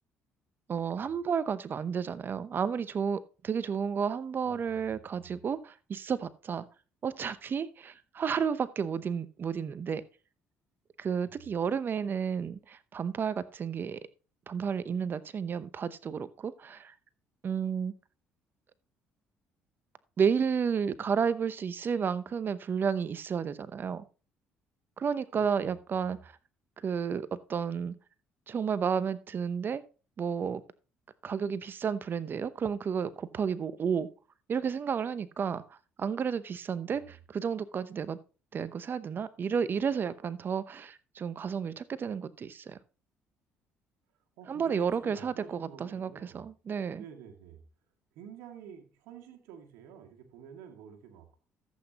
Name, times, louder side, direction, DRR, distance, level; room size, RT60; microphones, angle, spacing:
voice 1, 0.7-6.7 7.0-10.0 11.0-14.0 14.5-16.9 17.4-17.9 20.2-24.0 25.0-26.3 26.8-27.9 28.5-29.8 30.2-30.6 31.2-34.1 34.5-38.2 38.5-42.8 44.5-47.0, right 6 dB, 45° right, 0.8 m, -32 dB
voice 2, 4.4-5.4 11.2-11.5 25.3-26.2 36.9-37.2 44.4-46.5 47.0-47.6 48.1-51.4, right 8 dB, 80° right, 2.0 m, -50 dB
13.5 x 8.1 x 2.9 m
supercardioid pair, 75°, 5 cm